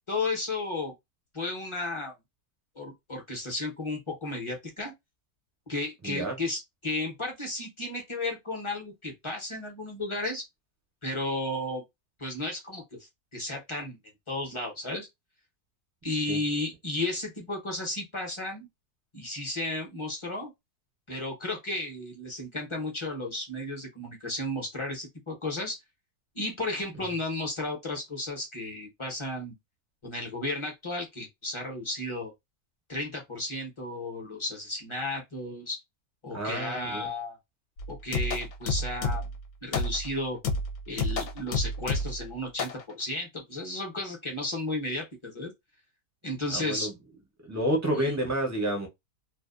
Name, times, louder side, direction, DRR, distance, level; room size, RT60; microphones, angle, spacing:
voice 1, 0.1-0.9 1.3-2.1 2.8-4.9 5.7-10.5 11.0-11.8 12.2-13.0 13.3-14.0 14.3-15.1 16.0-18.7 19.1-20.5 21.1-25.8 26.3-29.5 30.0-32.3 32.9-35.8 36.2-37.4 37.9-39.3 39.6-40.4 40.9-45.5 46.2-46.9 48.0-48.2, left 2 dB, 25° left, 0.7 m, -33 dB
voice 2, 6.0-6.4 16.3-16.4 36.3-37.1 46.5-46.9 47.4-48.9, right 1 dB, 20° right, 0.5 m, -29 dB
sound 1, 37.8-39.4 39.7-40.1 40.4-42.3 42.6-42.8, left 2 dB, 75° left, 1.0 m, -30 dB
2.6 x 2.3 x 2.4 m
omnidirectional pair, 1.6 m